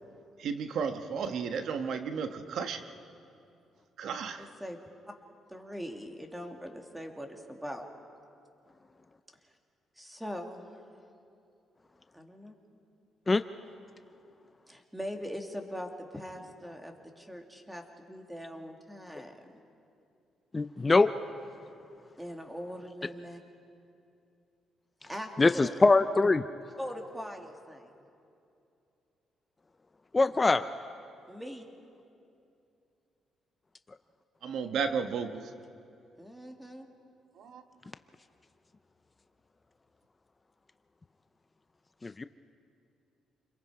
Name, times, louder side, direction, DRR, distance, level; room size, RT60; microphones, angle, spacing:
voice 1, 0.4-2.9 4.0-4.5 34.4-35.5 37.4-37.6, right 6 dB, 70° right, 8 dB, 1.2 m, -33 dB
voice 2, 4.4-4.8 5.5-7.9 10.0-10.8 12.1-12.6 14.7-19.3 22.2-23.4 25.1-25.7 26.8-27.9 31.3-31.7 36.2-36.9, equal, 5° right, 3 dB, 2.4 m, -41 dB
voice 3, 20.5-21.1 25.4-26.4 30.1-30.7 42.0-42.2, left 3 dB, 25° left, 11 dB, 0.6 m, -23 dB
28.5 x 22.0 x 4.9 m, 2.6 s
cardioid pair, 90°, 0 cm